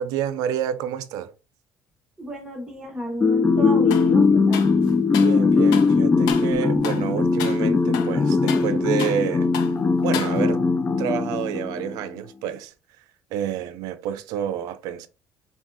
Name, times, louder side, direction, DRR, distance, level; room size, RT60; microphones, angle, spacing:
voice 1, 0.0-1.3 5.2-9.6 10.0-10.6 11.0-12.7 13.3-15.1, right 10 dB, 85° right, 0.4 m, -29 dB
voice 2, 2.2-4.6, equal, 10° right, 1.1 m, -33 dB
sound 1, 3.2-12.0, left 4 dB, 25° left, 0.4 m, -20 dB
sound 2, 3.9-4.1 4.5-5.4 5.7-5.9 6.3-6.5 6.8-7.1 7.4-7.6 7.9-9.3 9.5-9.8 10.1-10.7, left 8 dB, 85° left, 0.5 m, -33 dB
3.5 x 2.3 x 2.5 m
cardioid pair, 95°, 6 cm